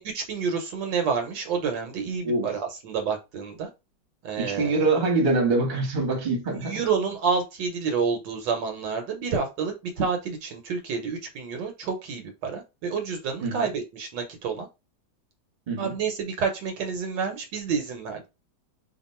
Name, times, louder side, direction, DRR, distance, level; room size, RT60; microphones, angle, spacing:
voice 1, 0.0-3.7 4.2-4.9 6.5-14.7 15.8-18.3, right 5 dB, 75° right, 1.3 m, -29 dB
voice 2, 4.4-6.8 13.4-13.7 15.7-15.9, right 3 dB, 35° right, 0.9 m, -24 dB
2.9 x 2.4 x 4.1 m
omnidirectional pair, 2.1 m